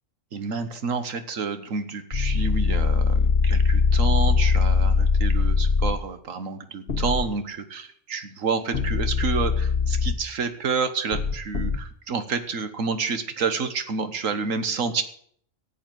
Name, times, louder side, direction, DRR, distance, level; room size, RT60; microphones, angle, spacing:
voice 1, 0.3-15.0, right 5 dB, 80° right, 9 dB, 1.6 m, -29 dB
sound 1, 2.1-5.9 6.9-7.2 8.7-10.1 11.1-11.8, left 5 dB, 45° left, 1.4 m, -21 dB
13.5 x 8.0 x 7.8 m, 0.64 s
omnidirectional pair, 1.4 m